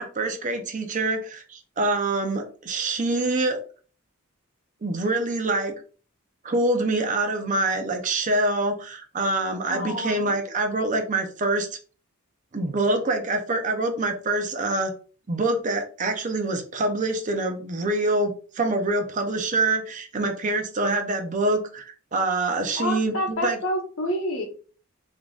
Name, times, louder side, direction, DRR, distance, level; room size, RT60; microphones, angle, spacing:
voice 1, 0.0-3.6 4.8-5.7 6.4-11.7 12.5-14.9 15.3-23.6, right 2 dB, 35° right, 5 dB, 0.6 m, -25 dB
voice 2, 9.7-10.4 22.8-24.5, left 1 dB, 65° left, 2 dB, 1.0 m, -28 dB
3.7 x 3.7 x 2.4 m, 0.39 s
head